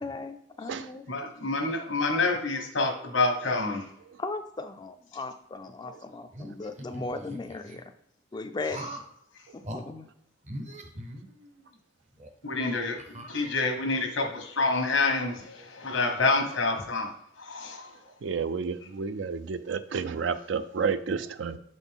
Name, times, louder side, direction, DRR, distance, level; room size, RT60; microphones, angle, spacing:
voice 1, 0.0-1.0 4.2-7.9 8.3-8.9 9.5-10.1, left 3 dB, 20° left, 7 dB, 0.3 m, -37 dB
voice 2, 1.1-3.9 12.4-13.0 13.3-17.1 17.4-17.9, left 3 dB, 85° left, 3 dB, 1.3 m, -27 dB
voice 3, 1.8-2.2 4.1-4.2 5.9-6.0 10.7-10.8 18.2-21.6, right 5 dB, 70° right, 12 dB, 0.4 m, -31 dB
sound 1, 6.3-7.8 8.7-9.1 9.6-9.8 10.4-11.7 12.2-12.3 13.0-13.9, right 1 dB, 40° right, 0.7 m, -41 dB
6.7 x 4.1 x 3.5 m, 0.75 s
head